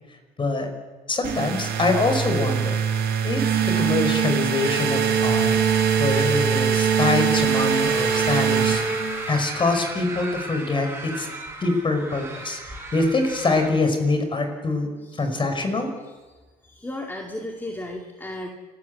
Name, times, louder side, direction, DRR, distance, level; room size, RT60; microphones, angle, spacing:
voice 1, 0.4-0.7 1.1-5.6 6.0-8.8 9.3-11.3 11.6-12.6 12.9-14.9 15.2-15.9, left 3 dB, 30° left, 6 dB, 5.3 m, -24 dB
sound 1, 1.2-9.6, right 7 dB, 70° right, 4.8 m, -22 dB
sound 2, 7.3-13.7, right 2 dB, 15° right, 6.7 m, -35 dB
voice 2, 15.0-15.3 16.6-18.5, left 1 dB, 10° left, 1 dB, 2.3 m, -34 dB
29.0 x 13.5 x 8.4 m, 1.3 s
cardioid pair, 110°, 17 cm